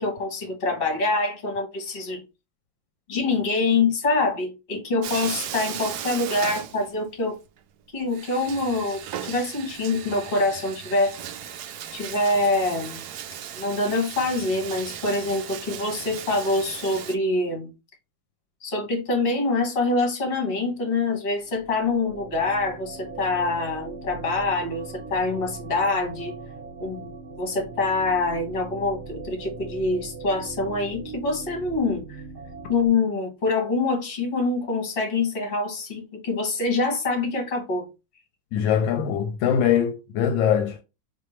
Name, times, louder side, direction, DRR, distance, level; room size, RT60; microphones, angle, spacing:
voice 1, 0.0-2.2 3.1-7.4 7.9-11.2 11.9-13.0 13.6-17.7 18.6-26.4 26.8-32.2 32.7-37.9, left 3 dB, 30° left, 1.3 m, -25 dB
Bathtub (filling or washing), 5.0-7.3 7.6-7.7 8.1-17.2, right 9 dB, 75° right, 0.9 m, -36 dB
sound 1, 21.4-32.9, right 4 dB, 45° right, 1.6 m, -40 dB
voice 2, 38.5-40.8, left 8 dB, 75° left, 1.2 m, -22 dB
4.3 x 3.1 x 3.1 m
omnidirectional pair, 2.2 m